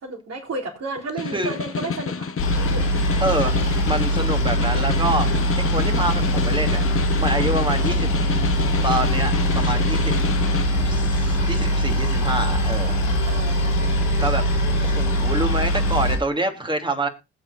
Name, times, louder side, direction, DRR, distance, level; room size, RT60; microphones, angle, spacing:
voice 1, 0.0-2.3 2.6-2.8 13.2-13.6, right 2 dB, 45° right, -4 dB, 4.4 m, -32 dB
Snare drum, 1.0-10.7, left 6 dB, 40° left, 1.4 m, -29 dB
Boat Water vehicle, 2.4-16.1, equal, 85° left, 5.3 m, -22 dB
voice 2, 3.2-5.3 5.6-6.8 7.2-8.1 8.8-10.1 10.8-13.0 14.2-17.1, right 1 dB, 15° right, 4 dB, 3.0 m, -26 dB
20.5 x 8.1 x 2.7 m, 0.26 s
hypercardioid pair, 45°, 33 cm